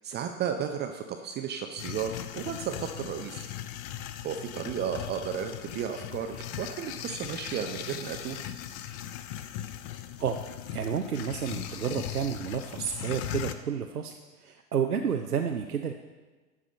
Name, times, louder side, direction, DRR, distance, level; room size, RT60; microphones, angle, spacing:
voice 1, 0.0-3.5 4.2-8.4, right 8 dB, 25° right, 5 dB, 0.6 m, -34 dB
sound 1, 1.8-13.6, left 11 dB, 25° left, 0.3 m, -39 dB
voice 2, 10.7-14.1 14.4-15.9, right 7 dB, 85° right, 4 dB, 0.7 m, -30 dB
12.0 x 4.9 x 6.7 m, 1.3 s
figure-of-eight pair, 85°, 44 cm